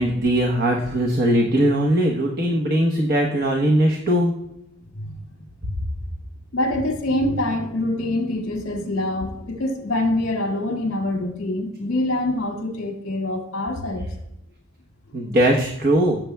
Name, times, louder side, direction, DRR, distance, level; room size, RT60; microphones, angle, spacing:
voice 1, 0.0-4.3 5.6-5.7 15.1-16.2, right 1 dB, 45° right, 0 dB, 1.0 m, -20 dB
voice 2, 6.5-14.1, left 1 dB, 60° left, 2 dB, 2.0 m, -25 dB
15.5 x 7.5 x 2.3 m, 0.83 s
head